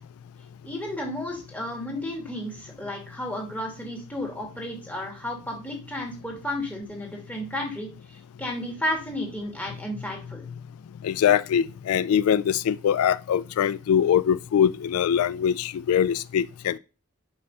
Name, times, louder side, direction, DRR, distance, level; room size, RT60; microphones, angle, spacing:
voice 1, 0.6-10.5, left 1 dB, 5° left, 2.2 m, -33 dB
voice 2, 11.0-16.8, left 9 dB, 80° left, 0.3 m, -23 dB
5.5 x 5.3 x 5.4 m
head